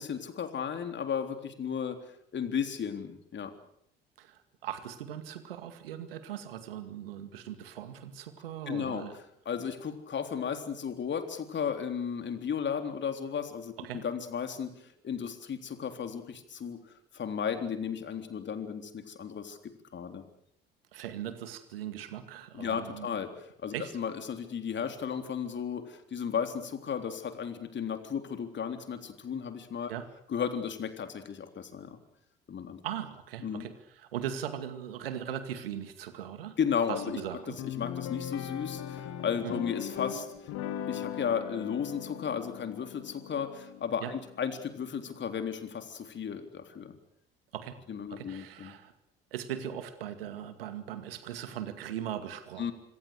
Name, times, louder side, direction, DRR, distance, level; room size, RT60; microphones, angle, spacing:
voice 1, 0.0-2.0 2.3-3.5 8.7-9.0 9.5-16.8 17.1-20.2 22.5-23.3 23.6-29.9 30.3-32.0 32.5-32.8 33.4-33.6 36.6-37.2 37.8-40.3 40.9-47.0 47.9-48.7 52.6-52.7, left 7 dB, 40° left, 8 dB, 3.7 m, -34 dB
voice 2, 4.2-9.2 13.8-14.0 20.9-23.1 23.7-24.0 29.9-30.1 32.8-36.6 36.9-37.6 39.4-39.5 44.0-44.1 47.5-47.8 48.1-48.9 49.3-52.7, right 10 dB, 75° right, 11 dB, 2.3 m, -39 dB
sound 1, 36.9-45.4, left 10 dB, 60° left, 3.2 m, -40 dB
26.5 x 24.5 x 6.7 m, 0.71 s
figure-of-eight pair, 55°, 29 cm